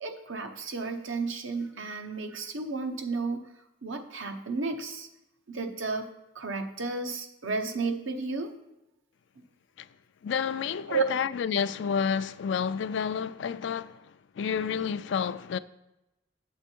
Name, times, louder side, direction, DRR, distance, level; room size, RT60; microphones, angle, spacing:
voice 1, 0.0-3.5 3.8-5.1 5.5-6.1 6.3-8.5 10.9-11.0, right 4 dB, 80° right, 1.0 m, -32 dB
voice 2, 10.2-14.0 14.4-15.6, left 7 dB, 65° left, 0.3 m, -30 dB
8.0 x 7.2 x 4.5 m
head